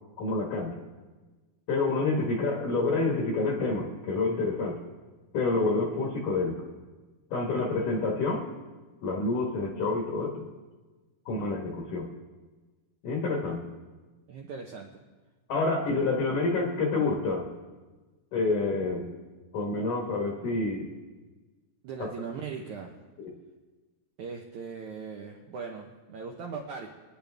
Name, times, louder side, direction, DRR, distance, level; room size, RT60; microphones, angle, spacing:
voice 1, 0.2-0.8 1.7-4.8 5.3-6.6 7.3-8.5 9.0-10.4 11.3-12.1 13.0-13.6 15.5-17.5 18.3-19.1 19.5-20.9 22.0-22.1 23.2-23.3, left 3 dB, 60° left, 0 dB, 2.5 m, -28 dB
voice 2, 14.3-15.0 21.8-22.9 24.2-26.9, right 5 dB, 85° right, 1 dB, 1.7 m, -39 dB
26.5 x 10.5 x 3.5 m, 1.3 s
omnidirectional pair, 4.9 m